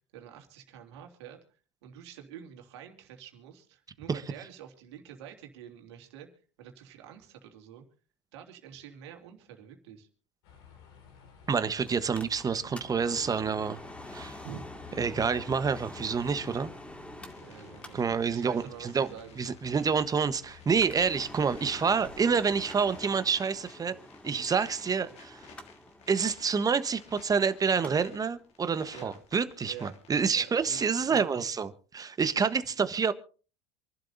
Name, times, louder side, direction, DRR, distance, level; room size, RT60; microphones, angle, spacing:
voice 1, 0.1-6.3 6.6-7.8 8.3-10.1 14.4-14.7 16.0-16.1 17.4-19.6 28.9-29.1 29.7-30.0 30.3-31.5 32.4-32.7, right 9 dB, 75° right, 3 dB, 3.1 m, -48 dB
sound 1, 10.4-23.0, left 6 dB, 70° left, 4.3 m, -52 dB
voice 2, 11.5-13.8 14.1-14.4 15.0-16.7 17.9-19.1 19.4-23.9 24.2-25.4 26.1-33.1, right 5 dB, 25° right, 13 dB, 1.2 m, -28 dB
Mechanical fan, 11.9-31.2 31.6-31.7, left 1 dB, 10° left, 2.2 m, -48 dB
sound 2, 17.3-31.2, left 6 dB, 50° left, 2.9 m, -56 dB
27.5 x 11.5 x 2.7 m, 0.38 s
hypercardioid pair, 80°, 14 cm